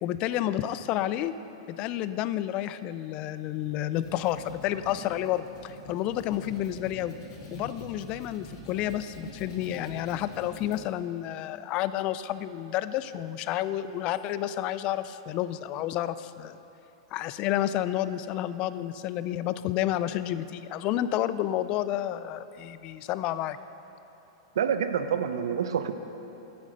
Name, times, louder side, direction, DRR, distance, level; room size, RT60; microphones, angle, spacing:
voice 1, 0.0-1.3 1.7-7.1 7.5-16.6 17.1-23.6, left 12 dB, 40° left, 14 dB, 0.4 m, -30 dB
sound 1, 3.7-10.8, left 1 dB, 65° left, 3.0 m, -45 dB
voice 2, 24.6-25.9, right 8 dB, 75° right, 9 dB, 0.7 m, -27 dB
9.8 x 8.6 x 6.4 m, 3.0 s
hypercardioid pair, 115°, 2 cm